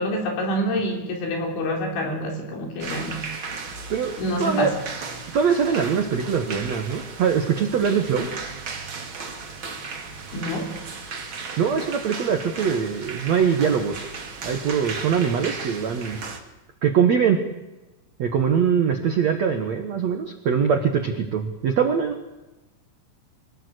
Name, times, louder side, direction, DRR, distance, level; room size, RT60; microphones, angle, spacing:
voice 1, 0.0-3.3 4.2-4.8 10.3-10.7, equal, 75° left, 2 dB, 5.8 m, -27 dB
sound 1, 2.8-16.4, right 4 dB, 40° right, 1.9 m, -36 dB
voice 2, 3.9-4.7 5.3-8.3 11.6-14.1 14.4-16.2 16.8-17.4 18.2-22.1, right 7 dB, 75° right, 5 dB, 1.5 m, -22 dB
24.5 x 17.5 x 8.1 m, 1.1 s
omnidirectional pair, 5.4 m